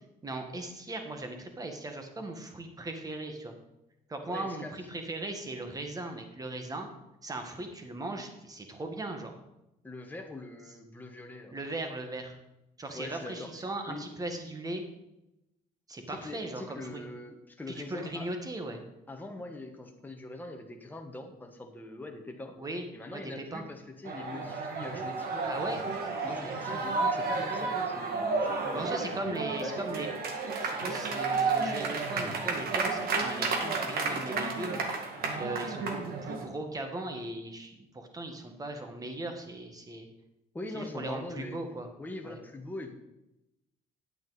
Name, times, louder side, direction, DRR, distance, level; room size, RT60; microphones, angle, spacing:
voice 1, 0.2-3.5 4.1-6.9 7.2-9.3 11.5-12.4 12.8-14.8 15.9-17.0 17.7-18.8 22.6-22.8 23.1-23.6 25.5-25.8 26.2-26.6 28.7-30.1 30.6-34.8 35.3-40.1 40.7-41.9 42.2-42.4, right 2 dB, 20° right, 5 dB, 1.6 m, -38 dB
voice 2, 4.3-4.7 9.8-11.5 12.9-13.5 13.9-14.1 16.1-18.3 19.1-22.6 22.9-25.5 26.2-29.3 29.6-29.8 40.5-41.6 42.0-42.9, left 2 dB, 10° left, 3 dB, 1.3 m, -43 dB
sound 1, 24.1-36.5, right 4 dB, 65° right, 1.8 m, -32 dB
9.6 x 8.5 x 4.0 m, 0.91 s
cardioid pair, 110°, 17 cm